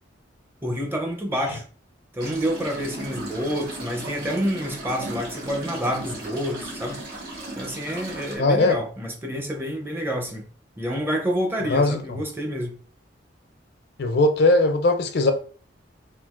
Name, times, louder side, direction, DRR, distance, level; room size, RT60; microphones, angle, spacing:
voice 1, 0.6-1.6 2.1-7.0 7.6-10.4 10.8-12.8, equal, 10° right, 0.5 m, -28 dB
sound 1, 2.2-8.4, right 1 dB, 55° right, 1.6 m, -36 dB
voice 2, 8.4-8.7 11.7-12.0 14.0-15.3, left 2 dB, 60° left, 0.4 m, -19 dB
3.7 x 2.4 x 2.4 m
head